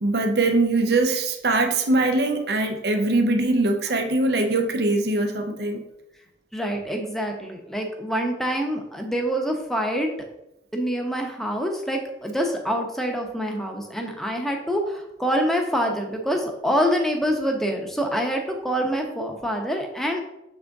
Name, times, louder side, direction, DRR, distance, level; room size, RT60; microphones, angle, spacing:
voice 1, 0.0-5.8, right 2 dB, 65° right, 5 dB, 0.7 m, -22 dB
voice 2, 6.5-10.1 10.7-20.2, equal, ahead, 2 dB, 0.8 m, -26 dB
6.8 x 3.9 x 3.5 m, 0.87 s
head